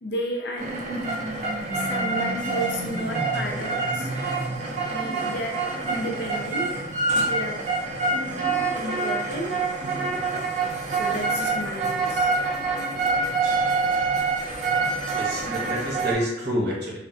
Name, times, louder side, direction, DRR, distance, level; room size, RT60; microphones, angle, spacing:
voice 1, 0.0-0.8 1.7-4.1 4.9-6.8 7.1-7.6 8.7-9.7 10.9-12.3, equal, 60° left, 1 dB, 0.4 m, -32 dB
sound 1, 0.6-16.1, right 3 dB, 40° right, 0.3 m, -26 dB
voice 2, 15.1-17.0, equal, 65° right, -4 dB, 0.8 m, -28 dB
2.4 x 2.1 x 2.6 m, 0.92 s
head